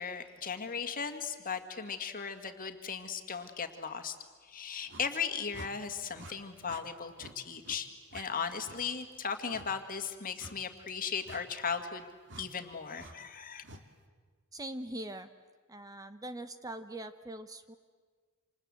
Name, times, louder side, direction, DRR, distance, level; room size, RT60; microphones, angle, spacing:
voice 1, 0.0-4.2 4.4-12.0 12.4-13.6, left 6 dB, 40° left, 7 dB, 2.0 m, -37 dB
sound 1, 4.9-5.1 5.5-5.7 6.1-6.3 6.7-6.8 7.2-7.4 7.6-7.8 8.1-8.3 8.6-8.8 9.5-9.7 10.4-10.6 11.2-11.4 12.3-12.5 13.0-13.1 13.6-13.8, right 2 dB, 60° right, 2.0 m, -48 dB
voice 2, 14.5-15.3 15.7-17.8, right 1 dB, 15° right, 10 dB, 0.8 m, -42 dB
28.0 x 27.0 x 7.7 m, 1.5 s
head